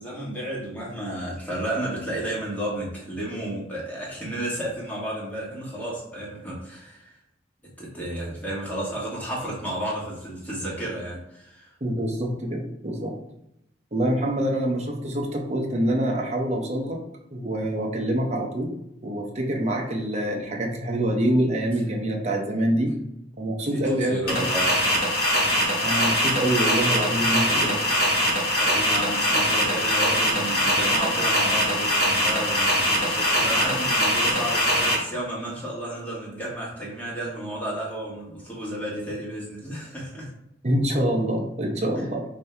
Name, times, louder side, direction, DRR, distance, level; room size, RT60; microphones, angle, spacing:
voice 1, 0.0-7.1 7.8-11.7 23.7-25.2 28.5-40.3 41.9-42.1, right 1 dB, 10° left, -5 dB, 1.4 m, -32 dB
voice 2, 11.8-13.1 13.9-17.0 17.3-18.7 19.0-22.9 23.4-24.2 25.8-27.9 40.6-42.2, right 1 dB, 35° right, 1 dB, 0.7 m, -25 dB
sound 1, 24.3-34.9, equal, 55° left, 1.2 m, -22 dB
5.1 x 2.7 x 3.3 m, 0.81 s
head